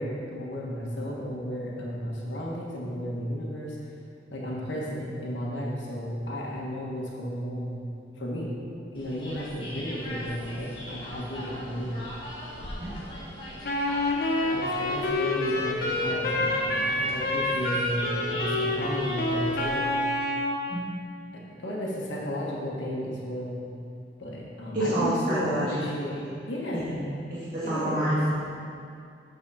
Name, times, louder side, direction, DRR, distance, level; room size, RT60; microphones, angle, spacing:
voice 1, 0.0-3.9 4.3-7.8 8.2-8.6 8.9-11.9 14.4-19.9 21.3-23.6 24.2-27.1 27.6-28.2, equal, 85° left, -4 dB, 1.4 m, -33 dB
sound 1, 8.9-19.7, equal, 25° left, 1.5 m, -40 dB
Wind instrument woodwind instrument, 13.6-20.6, left 1 dB, 55° left, 1.0 m, -27 dB
voice 2, 24.7-25.8 26.1-26.2 26.7-27.0 27.3-28.3, right 1 dB, 50° right, -12 dB, 2.1 m, -28 dB
8.4 x 4.2 x 6.9 m, 2.5 s
head